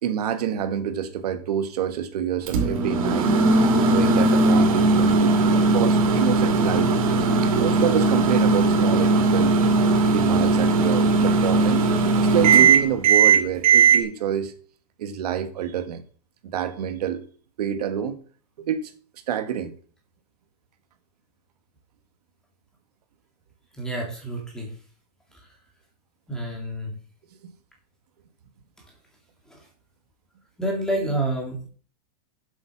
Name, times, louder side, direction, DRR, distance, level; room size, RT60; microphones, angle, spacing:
voice 1, 0.0-3.3 3.9-6.9 7.4-9.6 10.1-11.9 12.2-14.5 15.0-16.0 16.4-17.2 17.6-18.2 18.6-18.8 19.3-19.7 27.4-27.5, right 9 dB, 75° right, 1.5 m, -27 dB
Microwave oven, 2.5-14.0, right 3 dB, 55° right, 2.3 m, -18 dB
voice 2, 23.8-24.7 26.3-26.9 29.5-29.6 30.6-31.7, right 1 dB, 5° left, 2.3 m, -28 dB
8.2 x 8.0 x 6.0 m
supercardioid pair, 180°, 20 cm